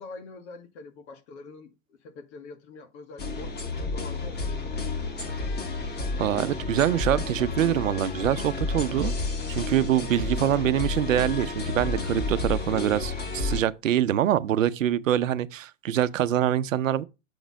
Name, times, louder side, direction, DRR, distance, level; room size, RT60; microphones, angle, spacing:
voice 1, 0.0-1.7 2.0-4.9 10.1-10.8, left 3 dB, 60° left, 2.0 m, -45 dB
sound 1, 3.2-13.6, left 3 dB, 25° left, 2.0 m, -31 dB
voice 2, 6.2-9.1 9.5-17.0, right 11 dB, 80° right, 0.7 m, -25 dB
6.9 x 4.0 x 6.3 m
hypercardioid pair, 105°, 38 cm